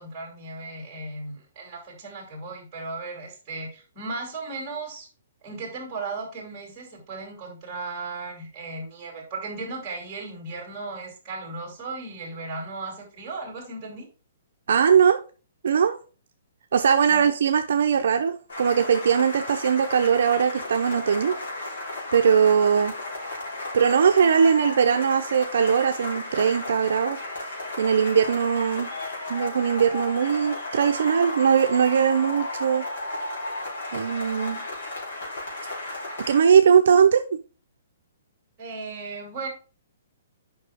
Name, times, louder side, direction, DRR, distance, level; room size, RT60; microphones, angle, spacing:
voice 1, 0.0-5.1 5.4-14.1 17.1-17.3 38.6-39.5, right 3 dB, 15° right, 2.5 m, -36 dB
voice 2, 14.7-15.2 15.6-16.0 16.7-21.3 22.1-23.0 23.7-27.2 27.8-28.9 29.3-32.9 33.9-34.6 36.2-37.2, right 7 dB, 60° right, 0.6 m, -20 dB
sound 1, 18.5-36.4, left 2 dB, 65° left, 3.5 m, -34 dB
7.2 x 5.4 x 3.5 m
hypercardioid pair, 175°, 0 cm